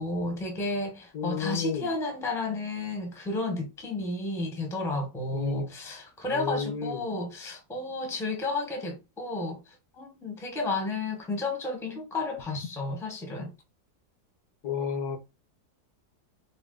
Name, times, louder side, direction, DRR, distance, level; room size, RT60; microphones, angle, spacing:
voice 1, 0.0-13.5, left 2 dB, ahead, 0.8 m, -32 dB
voice 2, 1.1-1.9 5.3-5.7 6.3-7.1 14.6-15.2, left 7 dB, 75° left, 1.5 m, -32 dB
4.4 x 3.0 x 3.8 m
omnidirectional pair, 1.7 m